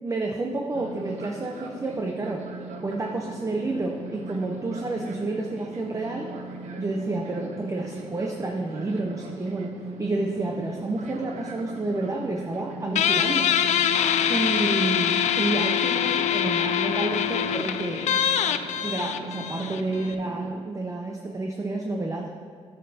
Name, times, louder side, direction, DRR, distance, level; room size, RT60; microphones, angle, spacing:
voice 1, 0.0-2.5 2.8-6.3 6.8-9.7 10.0-13.5 14.3-18.1 18.8-22.3, right 2 dB, 25° right, 1 dB, 0.6 m, -29 dB
Fixed-wing aircraft airplane, 0.7-20.5, right 3 dB, 85° right, 0.7 m, -39 dB
Guitar, 13.0-20.1, left 9 dB, 80° left, 0.4 m, -24 dB
10.0 x 6.5 x 2.8 m, 2.4 s
cardioid pair, 95°, 12 cm